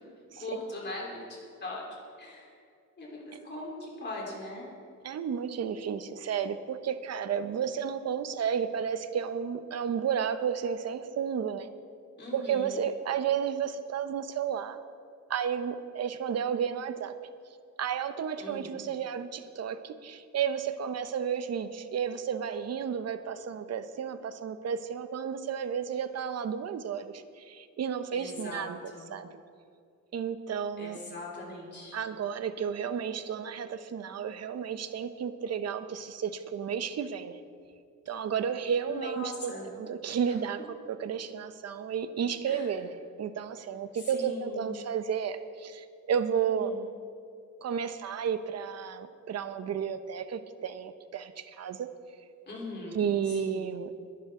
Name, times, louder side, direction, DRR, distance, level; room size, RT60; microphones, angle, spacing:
voice 1, 0.3-1.8 2.2-2.5 3.0-4.7 12.2-12.8 18.4-18.8 28.1-29.1 30.8-32.0 38.9-39.7 42.5-42.7 44.1-44.7 46.5-46.8 52.5-53.1 53.4-53.7, left 2 dB, 35° left, -3 dB, 3.7 m, -40 dB
voice 2, 5.0-11.7 12.3-14.8 15.3-17.2 17.8-29.3 30.1-31.0 31.9-37.4 38.1-46.7 47.6-51.9 52.9-53.9, right 7 dB, 55° right, 11 dB, 0.8 m, -32 dB
21.0 x 11.5 x 3.8 m, 2.4 s
wide cardioid pair, 160°, 31 cm